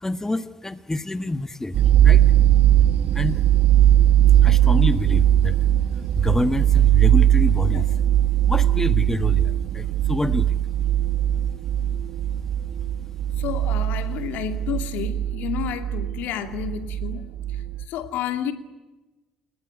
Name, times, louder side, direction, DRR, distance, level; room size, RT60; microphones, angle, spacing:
voice 1, 0.0-2.2 3.1-3.4 4.4-5.6 6.1-8.0 8.5-10.6, left 2 dB, 15° left, 1.4 m, -27 dB
sound 1, 1.7-17.8, right 11 dB, 60° right, 1.2 m, -19 dB
voice 2, 13.4-17.3 17.9-18.5, left 9 dB, 65° left, 2.5 m, -30 dB
29.5 x 21.5 x 9.5 m
hypercardioid pair, 50°, 3 cm